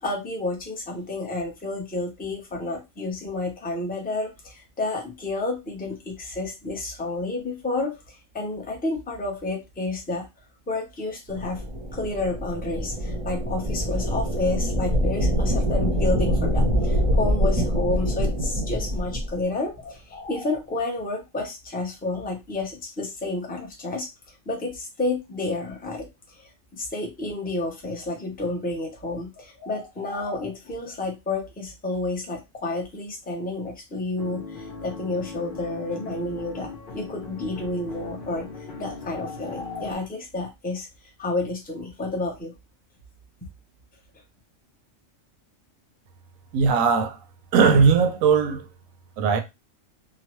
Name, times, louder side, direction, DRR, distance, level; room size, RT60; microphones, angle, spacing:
voice 1, 0.0-7.9 8.3-10.3 10.7-11.6 11.9-24.1 24.5-26.1 26.4-38.5 38.8-40.9 41.2-42.5, left 2 dB, 10° left, 0.5 m, -30 dB
sound 1, 11.3-19.4, equal, 40° right, 0.6 m, -24 dB
sound 2, 34.2-39.9, left 3 dB, 45° left, 0.9 m, -39 dB
voice 2, 46.5-47.2 47.5-48.6 49.2-49.4, right 5 dB, 85° right, 1.0 m, -19 dB
2.9 x 2.1 x 2.9 m
omnidirectional pair, 1.4 m